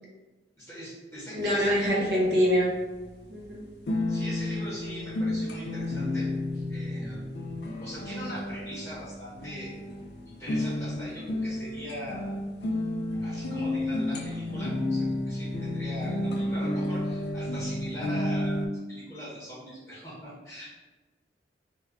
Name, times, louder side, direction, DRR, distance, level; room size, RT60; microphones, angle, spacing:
voice 1, 0.6-1.9 4.1-6.3 6.7-7.3 7.8-9.7 10.2-12.4 13.2-18.6 18.9-20.7, equal, 15° left, -10 dB, 1.0 m, -41 dB
voice 2, 1.3-2.7 3.3-3.7, equal, 60° right, -4 dB, 0.5 m, -24 dB
sound 1, 1.4-18.7, left 1 dB, 65° left, 0.4 m, -32 dB
2.2 x 2.1 x 3.5 m, 1.2 s
head